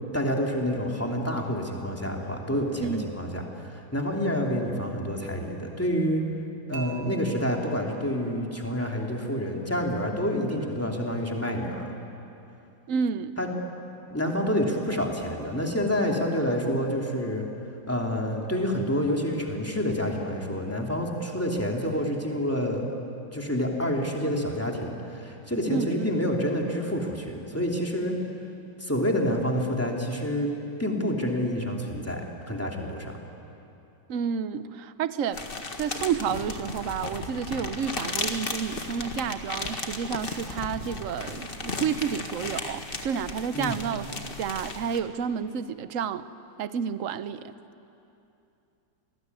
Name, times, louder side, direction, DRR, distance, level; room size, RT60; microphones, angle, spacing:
voice 1, 0.1-6.2 6.7-11.8 13.4-13.5 14.1-17.5 17.9-22.9 23.3-28.1 28.8-30.5 30.8-32.2 32.5-33.2 43.5-43.8, equal, 5° left, 0 dB, 2.9 m, -28 dB
Dishes pots and pans / Chink clink, 6.7-8.9, right 5 dB, 80° right, 3.1 m, -46 dB
voice 2, 12.9-13.3 25.7-26.2 34.1-35.5 35.8-44.1 44.4-46.2 46.6-47.5, right 7 dB, 55° right, 13 dB, 1.0 m, -30 dB
sound 1, 35.3-45.0, left 2 dB, 30° left, 1.8 m, -35 dB
27.0 x 19.5 x 9.6 m, 2.7 s
omnidirectional pair, 2.1 m